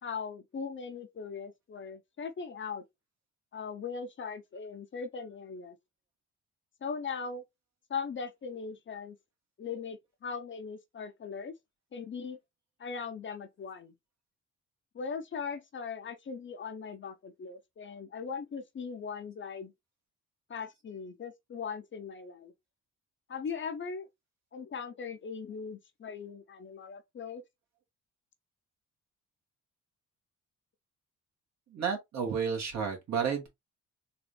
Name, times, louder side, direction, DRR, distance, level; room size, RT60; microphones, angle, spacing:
voice 1, 0.0-2.8 3.5-5.8 6.8-7.4 7.9-9.2 9.6-11.5 11.9-12.4 12.8-13.9 14.9-19.7 20.5-22.5 23.3-24.1 24.5-27.4, left 5 dB, 40° left, 0.8 m, -39 dB
voice 2, 31.7-33.5, right 6 dB, 65° right, 2.0 m, -31 dB
4.0 x 2.7 x 3.2 m
cardioid pair, 90°, 30 cm